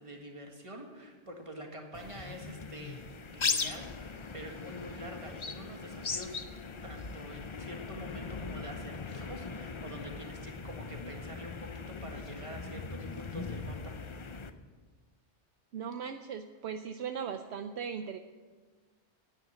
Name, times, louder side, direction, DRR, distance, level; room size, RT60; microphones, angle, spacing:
voice 1, 0.0-3.0 3.3-6.4 6.8-13.9 14.2-14.4, right 1 dB, 25° right, 2 dB, 1.8 m, -46 dB
sound 1, 1.9-14.5, left 4 dB, 35° left, 0.5 m, -39 dB
voice 2, 15.7-18.2, right 7 dB, 70° right, 8 dB, 0.9 m, -38 dB
10.5 x 10.0 x 7.5 m, 1.4 s
omnidirectional pair, 1.2 m